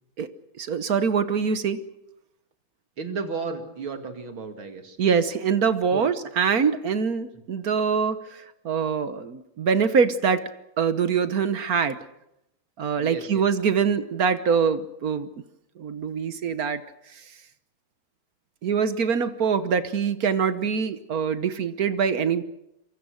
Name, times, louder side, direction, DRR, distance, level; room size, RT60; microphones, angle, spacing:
voice 1, 0.6-1.8 5.0-10.4 10.8-12.0 12.8-15.3 15.8-16.8 18.6-22.4, right 6 dB, 55° right, 12 dB, 1.4 m, -24 dB
voice 2, 3.0-5.0 5.9-6.0 13.0-13.4, right 4 dB, 80° right, 6 dB, 3.2 m, -33 dB
27.0 x 24.0 x 6.4 m, 0.84 s
omnidirectional pair, 2.2 m